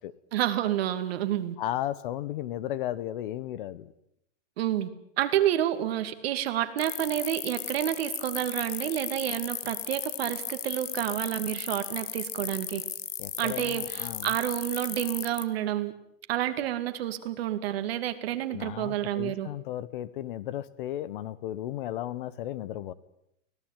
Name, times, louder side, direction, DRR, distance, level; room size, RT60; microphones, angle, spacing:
voice 1, 0.3-1.6 4.6-4.9 5.2-12.8 13.4-15.9 16.3-19.5, right 12 dB, 50° right, 9 dB, 2.3 m, -29 dB
voice 2, 1.6-3.9 13.2-14.3 18.5-22.9, left 13 dB, 45° left, 18 dB, 1.0 m, -35 dB
sound 1, 6.8-15.4, left 11 dB, 75° left, 1.9 m, -35 dB
24.5 x 18.0 x 9.0 m, 0.76 s
supercardioid pair, 165°, 38 cm